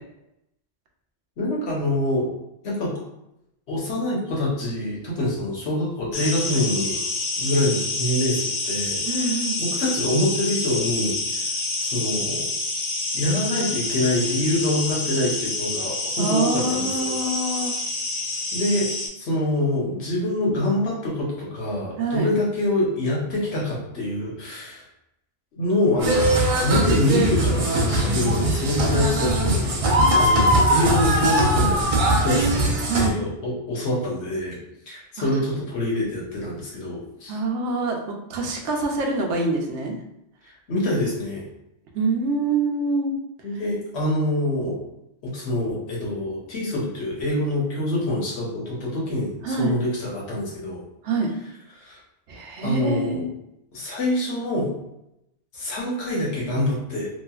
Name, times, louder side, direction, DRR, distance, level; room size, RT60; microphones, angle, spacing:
voice 1, 1.4-2.3 2.6-2.9 3.7-7.0 7.4-11.1 11.8-12.4 13.1-17.2 18.5-18.9 19.2-24.8 25.6-31.8 32.2-34.6 34.9-37.4 40.7-41.4 43.4-44.8 45.2-50.8 51.7-52.0 52.6-53.2 53.7-54.7 55.5-57.1, left 1 dB, 70° left, -4 dB, 1.2 m, -25 dB
sound 1, 6.1-19.1, left 2 dB, 50° left, 0.4 m, -28 dB
voice 2, 9.0-9.6 16.2-17.7 22.0-22.3 32.9-33.2 35.2-35.4 37.3-40.0 41.9-43.1 49.4-49.7 51.0-51.3 52.3-53.3, right 3 dB, 90° right, 1 dB, 0.9 m, -25 dB
sound 2, 26.0-33.1, right 1 dB, 60° right, 0.3 m, -20 dB
2.9 x 2.4 x 2.3 m, 0.84 s
omnidirectional pair, 1.1 m